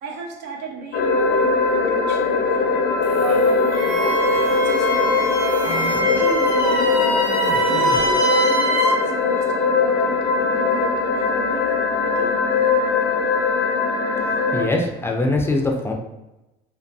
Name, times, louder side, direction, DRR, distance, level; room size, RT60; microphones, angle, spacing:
voice 1, 0.0-2.7 3.2-3.9 4.4-7.3 7.6-11.7 12.0-12.3, right 4 dB, 85° right, 0 dB, 0.5 m, -34 dB
sound 1, 0.9-14.6, left 4 dB, 85° left, 0.4 m, -20 dB
sound 2, 3.0-8.3, right 1 dB, 55° right, 0.9 m, -35 dB
Wind instrument woodwind instrument, 3.7-9.0, right 1 dB, 15° right, 0.8 m, -23 dB
voice 2, 14.2-15.9, left 2 dB, 15° left, 1 dB, 0.3 m, -23 dB
2.5 x 2.3 x 2.3 m, 0.96 s
cardioid pair, 110°, 17 cm